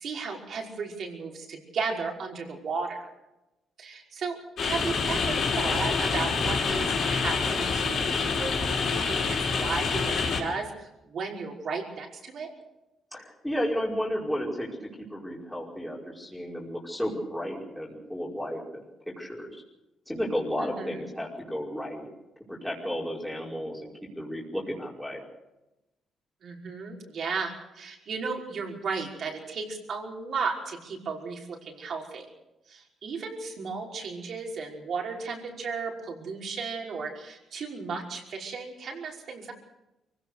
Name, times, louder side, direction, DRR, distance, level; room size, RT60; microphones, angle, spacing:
voice 1, 0.0-3.0 3.8-12.5 20.6-21.0 26.4-32.3 32.7-39.5, right 4 dB, 60° right, 0 dB, 5.5 m, -35 dB
sound 1, 4.6-10.4, left 5 dB, 60° left, 5.6 m, -27 dB
voice 2, 13.1-14.8 15.1-18.8 19.2-19.6 20.1-22.1 22.5-25.2, equal, 5° left, -3 dB, 5.1 m, -33 dB
24.0 x 17.0 x 6.7 m, 0.96 s
cardioid pair, 90°, 0 cm